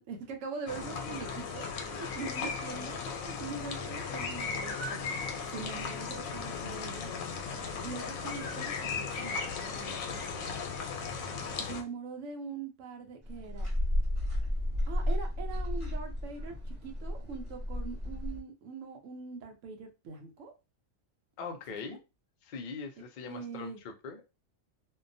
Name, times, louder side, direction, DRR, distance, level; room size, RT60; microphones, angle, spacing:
voice 1, 0.0-7.2 7.8-10.6 11.6-13.7 14.9-20.5 23.2-23.8, right 5 dB, 70° right, 1.0 m, -43 dB
sound 1, 0.7-11.8, left 5 dB, 90° left, 1.0 m, -36 dB
sound 2, 13.2-18.4, left 1 dB, 35° right, 1.1 m, -32 dB
voice 2, 21.4-22.0 22.4-24.2, left 5 dB, 70° left, 0.4 m, -41 dB
2.7 x 2.2 x 2.5 m
omnidirectional pair, 1.4 m